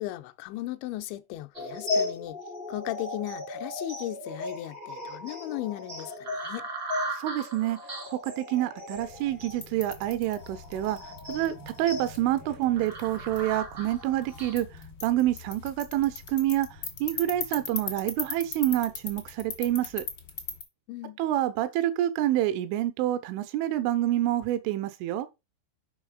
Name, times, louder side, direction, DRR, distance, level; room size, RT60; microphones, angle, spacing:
voice 1, 0.0-2.4 2.7-6.6 20.9-21.2, left 16 dB, 80° left, 2.7 m, -36 dB
sound 1, 1.5-14.6, left 1 dB, 40° right, 0.8 m, -36 dB
voice 2, 7.1-7.8 8.1-14.7 15.0-16.7 17.0-20.0 21.2-25.3, right 13 dB, 80° right, 3.3 m, -27 dB
sound 2, 8.9-20.6, left 5 dB, 60° left, 1.1 m, -40 dB
7.2 x 5.7 x 4.9 m
omnidirectional pair, 5.7 m